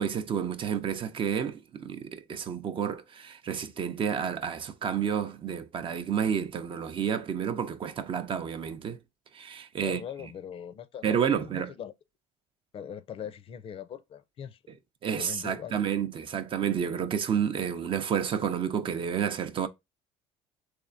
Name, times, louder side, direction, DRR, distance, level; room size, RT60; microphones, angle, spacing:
voice 1, 0.0-9.0 9.3-10.0 11.0-11.7 15.0-19.7, right 8 dB, 40° right, 0.6 m, -30 dB
voice 2, 9.8-11.4 11.8-11.9 12.7-14.6 15.2-15.8, left 8 dB, 45° left, 0.5 m, -40 dB
3.4 x 3.3 x 2.5 m
supercardioid pair, 90°, 14 cm